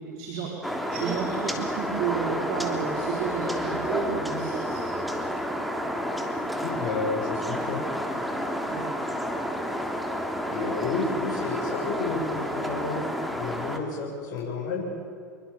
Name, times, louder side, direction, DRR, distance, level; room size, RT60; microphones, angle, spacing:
voice 1, 0.0-4.8 8.7-8.9, right 6 dB, 55° right, 0 dB, 4.5 m, -32 dB
sound 1, 0.6-13.8, equal, ahead, 3.2 m, -30 dB
voice 2, 6.6-7.8 10.5-13.0 13.3-14.9, left 4 dB, 45° left, -3 dB, 7.9 m, -31 dB
27.0 x 23.5 x 7.2 m, 2.3 s
hypercardioid pair, 90°, 9 cm